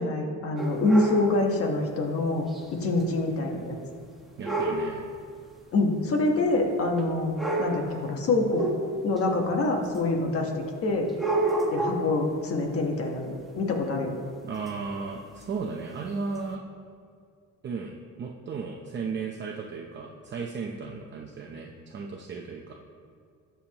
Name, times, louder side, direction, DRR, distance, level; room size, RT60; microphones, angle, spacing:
voice 1, 0.0-2.5 2.8-3.8 5.7-8.6 9.0-11.1 11.7-14.1, left 2 dB, 45° left, 2 dB, 1.3 m, -26 dB
sound 1, 0.6-1.3 2.5-2.6 3.0-3.1 4.4-4.9 5.9-6.0 7.0-7.1 7.4-7.9 8.5-9.2 9.9-10.0 11.1-12.2 14.7-14.8 15.4-15.5 16.3-16.4, right 2 dB, ahead, 1.1 m, -28 dB
voice 2, 4.4-5.1 14.4-16.6 17.6-22.8, right 4 dB, 35° right, 0 dB, 0.7 m, -35 dB
20.5 x 7.0 x 3.0 m, 2.2 s
cardioid pair, 180°, 32 cm